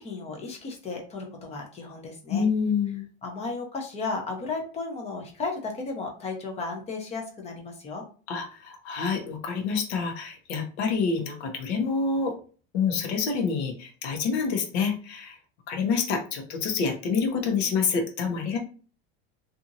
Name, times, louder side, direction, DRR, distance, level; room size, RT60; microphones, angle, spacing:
voice 1, 0.0-2.5 3.2-8.0, left 3 dB, 20° left, 1 dB, 0.7 m, -34 dB
voice 2, 2.3-3.1 8.3-12.3 12.7-15.4 15.7-18.6, left 5 dB, 75° left, 3 dB, 0.9 m, -27 dB
2.8 x 2.6 x 2.5 m, 0.39 s
supercardioid pair, 155°, 33 cm